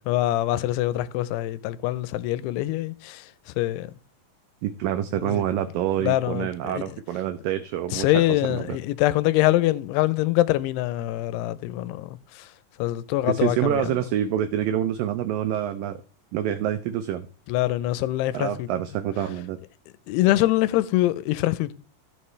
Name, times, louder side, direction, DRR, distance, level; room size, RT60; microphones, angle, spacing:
voice 1, 0.1-3.9 5.1-5.4 6.0-7.0 7.9-12.5 12.8-13.9 17.5-18.7 20.1-21.7, left 16 dB, 85° left, 2.6 m, -24 dB
voice 2, 4.6-8.2 8.5-8.8 13.2-16.0 16.3-17.3 18.3-19.6, right 11 dB, 90° right, 1.9 m, -27 dB
15.5 x 5.4 x 3.2 m
omnidirectional pair, 4.7 m